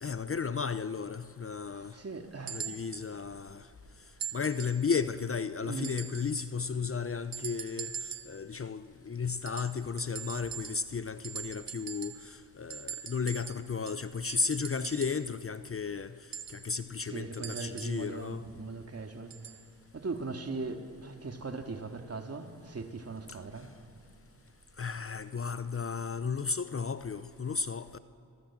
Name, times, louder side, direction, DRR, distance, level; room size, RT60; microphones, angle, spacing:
voice 1, 0.0-2.0 2.5-3.7 4.3-16.1 16.5-18.4 24.8-28.0, left 5 dB, 35° left, 0.8 m, -34 dB
voice 2, 1.7-2.6 5.6-6.0 17.0-19.4 19.9-23.8, right 3 dB, 35° right, 2.4 m, -39 dB
sound 1, 2.5-3.1 4.2-4.9 5.8-6.4 7.3-8.4 9.5-11.0 11.2-12.3 12.7-15.3 16.3-18.1 19.3-19.6 20.6-20.7, right 8 dB, 55° right, 1.3 m, -42 dB
29.5 x 22.5 x 7.5 m
cardioid pair, 65°, 41 cm